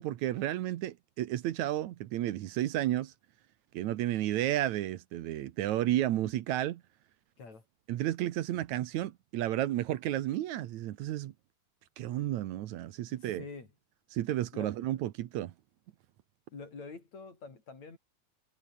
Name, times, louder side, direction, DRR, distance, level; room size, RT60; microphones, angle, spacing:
voice 1, 0.0-3.1 3.7-6.8 7.9-11.3 12.0-13.4 14.1-15.5, right 13 dB, 75° right, 2.3 m, -32 dB
voice 2, 13.4-13.7 14.5-14.7 16.5-18.0, left 4 dB, 65° left, 6.8 m, -46 dB
omnidirectional pair, 3.4 m